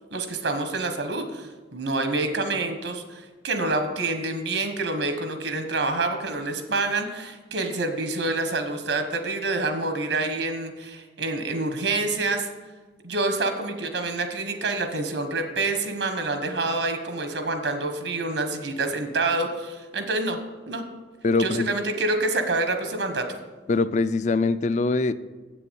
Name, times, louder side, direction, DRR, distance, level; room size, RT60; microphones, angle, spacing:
voice 1, 0.1-12.5 13.0-20.4 20.7-20.8 21.4-23.2, right 2 dB, 80° right, 6 dB, 1.2 m, -27 dB
voice 2, 21.2-21.7 23.7-25.1, left 3 dB, 40° left, 15 dB, 0.4 m, -23 dB
7.9 x 6.9 x 7.0 m, 1.3 s
head